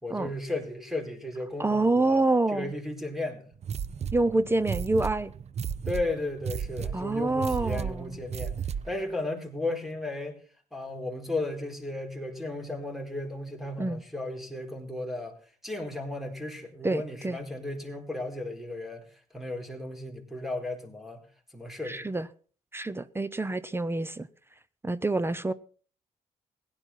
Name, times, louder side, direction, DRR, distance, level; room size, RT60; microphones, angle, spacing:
voice 1, 0.0-2.2 2.5-3.5 5.9-8.5 8.8-10.4 10.7-15.4 15.6-19.0 19.3-21.2 21.5-22.1, left 2 dB, ahead, 4.4 m, -35 dB
voice 2, 1.6-2.7 4.1-5.3 6.9-8.2 13.8-14.0 16.8-17.4 21.8-22.3 22.7-24.3 24.8-25.5, right 2 dB, 15° right, 0.8 m, -27 dB
sound 1, 3.6-9.0, right 7 dB, 50° right, 0.7 m, -34 dB
16.5 x 10.5 x 5.9 m
cardioid pair, 80°, 14 cm